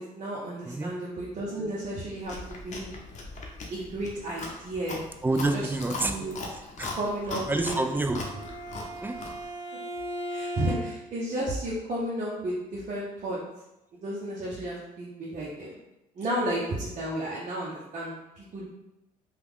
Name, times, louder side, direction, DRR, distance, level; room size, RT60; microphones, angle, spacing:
voice 1, 0.0-2.3 2.6-2.9 3.7-5.0 5.5-5.7 6.0-6.4 7.0-7.7 10.3-13.4 14.0-15.8 16.2-18.6, right 1 dB, 45° right, -6 dB, 0.8 m, -33 dB
Chewing mastication, 2.2-9.4, left 2 dB, 45° left, 0.8 m, -39 dB
voice 2, 5.2-6.2 6.5-7.0 7.2-8.5 9.0-9.2, right 2 dB, 10° right, 6 dB, 0.3 m, -29 dB
Bowed string instrument, 7.8-11.2, equal, 85° left, 0.7 m, -37 dB
2.9 x 2.4 x 3.6 m, 0.91 s
supercardioid pair, 80°, 17 cm